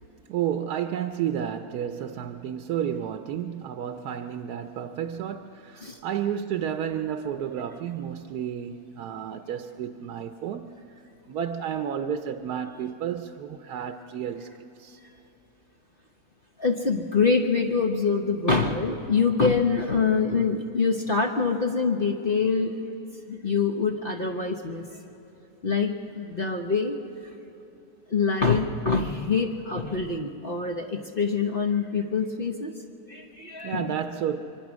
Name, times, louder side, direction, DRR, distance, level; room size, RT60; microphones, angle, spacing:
voice 1, 0.3-10.7 11.3-14.5 14.8-15.1 33.6-34.4, right 9 dB, 85° right, 1.2 m, -31 dB
voice 2, 16.6-22.8 23.3-24.9 25.6-27.0 28.1-32.7 33.1-33.9, left 4 dB, 40° left, 1.0 m, -25 dB
25.0 x 24.0 x 6.2 m
omnidirectional pair, 1.6 m